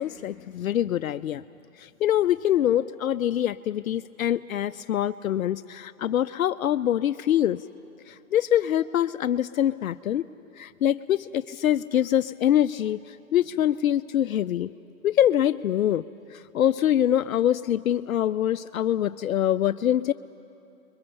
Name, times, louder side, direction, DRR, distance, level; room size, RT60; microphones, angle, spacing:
voice 1, 0.0-1.4 1.8-7.6 8.1-10.2 10.6-14.7 15.0-16.0 16.3-20.1, left 11 dB, 70° left, 11 dB, 0.6 m, -24 dB
28.0 x 22.5 x 6.9 m, 2.9 s
hypercardioid pair, 155°, 42 cm